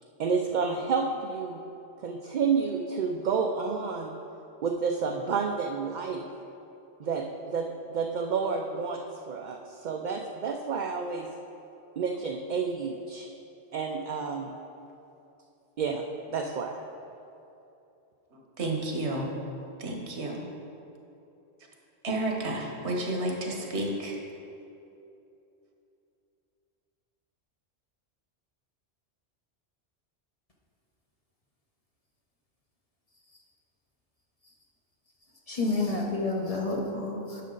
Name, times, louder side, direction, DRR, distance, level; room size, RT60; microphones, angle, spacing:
voice 1, 0.2-1.6 2.0-4.2 4.6-6.3 7.0-11.3 12.0-13.3 13.7-14.5 15.8-16.8, right 5 dB, 55° right, 3 dB, 0.5 m, -30 dB
voice 2, 18.6-19.3 19.8-20.4 22.0-24.2, right 1 dB, 75° right, 1 dB, 1.4 m, -31 dB
voice 3, 35.5-37.4, left 2 dB, 35° left, -1 dB, 0.9 m, -29 dB
10.0 x 6.5 x 3.8 m, 2.8 s
omnidirectional pair, 1.1 m